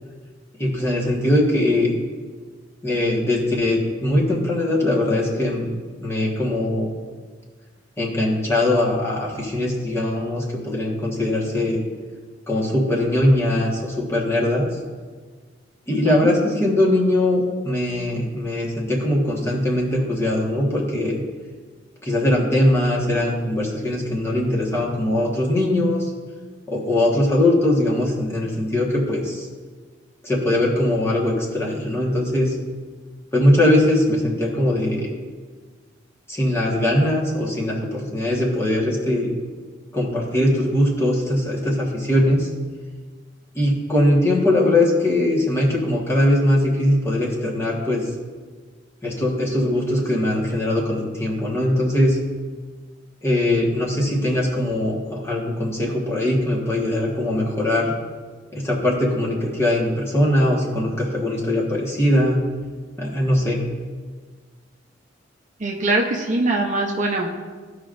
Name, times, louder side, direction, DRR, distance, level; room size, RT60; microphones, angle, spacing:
voice 1, 0.6-1.9 2.8-5.7 6.0-6.9 8.0-11.8 12.5-14.7 15.9-21.2 22.0-26.1 26.7-29.5 30.2-32.5 33.3-35.1 36.3-39.3 39.9-42.5 43.5-48.1 49.0-52.2 53.2-57.9 58.5-62.4 63.0-63.6, left 1 dB, 15° left, -4 dB, 1.4 m, -21 dB
voice 2, 15.9-16.3 65.6-67.3, right 2 dB, 40° right, 1 dB, 0.7 m, -22 dB
14.0 x 5.0 x 2.6 m, 1.5 s
head